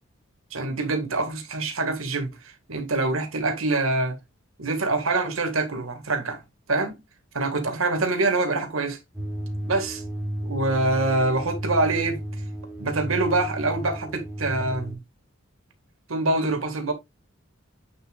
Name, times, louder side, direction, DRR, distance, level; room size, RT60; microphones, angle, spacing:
voice 1, 0.5-4.2 4.6-6.4 6.7-7.0 7.3-9.0 9.7-10.0 10.4-12.2 12.8-15.0 16.1-16.9, right 2 dB, 80° right, 1.9 m, -25 dB
sound 1, 9.1-14.9, right 1 dB, 5° right, 2.4 m, -33 dB
8.7 x 6.7 x 2.4 m
head